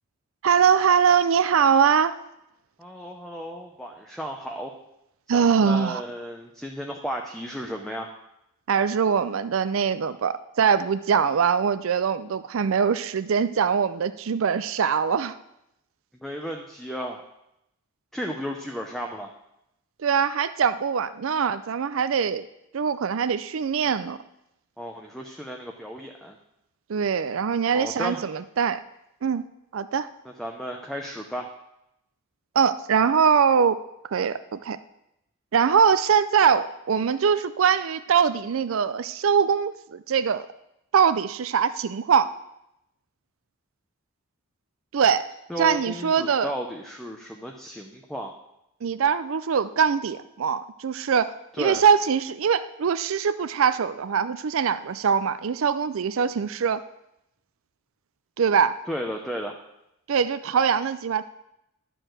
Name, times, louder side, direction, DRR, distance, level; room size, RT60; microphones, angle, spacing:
voice 1, 0.4-2.1 5.3-6.0 8.7-15.3 20.0-22.4 22.7-24.2 26.9-28.8 29.2-29.4 29.7-30.1 32.6-33.8 34.1-34.8 35.5-40.4 40.9-42.3 44.9-45.3 45.6-46.5 48.8-51.3 51.6-56.8 58.4-58.7 60.1-61.2, right 7 dB, 65° right, 13 dB, 0.4 m, -22 dB
voice 2, 2.8-4.7 5.3-8.1 16.2-17.2 18.1-19.3 24.8-26.3 27.7-28.2 30.2-31.5 45.5-48.3 51.5-51.8 58.9-59.5, equal, ahead, 1 dB, 0.7 m, -34 dB
11.5 x 4.6 x 7.7 m, 0.83 s
head